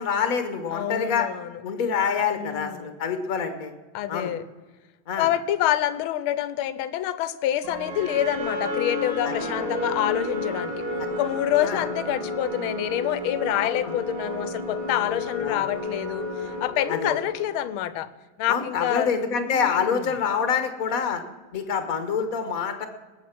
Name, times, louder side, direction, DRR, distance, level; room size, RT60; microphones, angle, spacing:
voice 1, 0.0-1.3 1.6-3.7 4.1-4.3 5.1-5.3 9.2-9.3 11.0-11.1 11.6-11.8 13.6-13.7 15.4-15.7 16.9-17.1 18.5-21.2 21.5-22.9, left 6 dB, 45° left, 8 dB, 1.5 m, -26 dB
voice 2, 0.7-1.5 2.4-2.9 3.9-4.4 5.2-10.8 11.2-18.1 18.4-19.1 19.5-20.1, left 12 dB, 85° left, 15 dB, 1.5 m, -27 dB
sound 1, 7.6-17.8, left 2 dB, 85° right, 3.6 m, -31 dB
19.5 x 7.6 x 6.0 m, 1.3 s
omnidirectional pair, 2.3 m